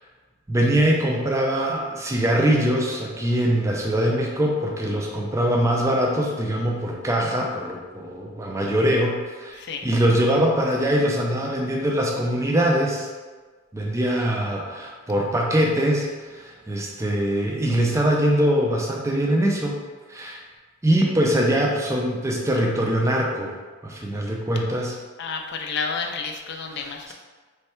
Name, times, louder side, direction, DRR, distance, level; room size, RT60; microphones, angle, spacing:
voice 1, 0.5-13.1 13.7-19.8 20.1-20.4 20.8-23.6 23.8-25.0 26.7-27.1, right 1 dB, 15° right, -1 dB, 0.4 m, -23 dB
voice 2, 25.2-27.1, left 5 dB, 50° left, 3 dB, 0.4 m, -30 dB
3.3 x 2.2 x 4.3 m, 1.4 s
head